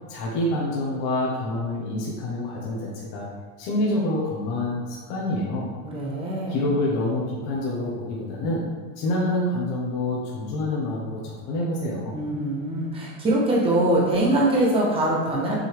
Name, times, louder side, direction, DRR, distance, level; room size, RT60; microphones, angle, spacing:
voice 1, 0.1-3.3 3.6-5.7 6.5-8.7 9.0-12.2, left 1 dB, 45° left, -5 dB, 1.3 m, -27 dB
voice 2, 5.8-6.6 12.1-15.6, right 1 dB, 15° right, -4 dB, 1.3 m, -23 dB
6.3 x 5.6 x 3.5 m, 1.5 s
supercardioid pair, 165°, 40 cm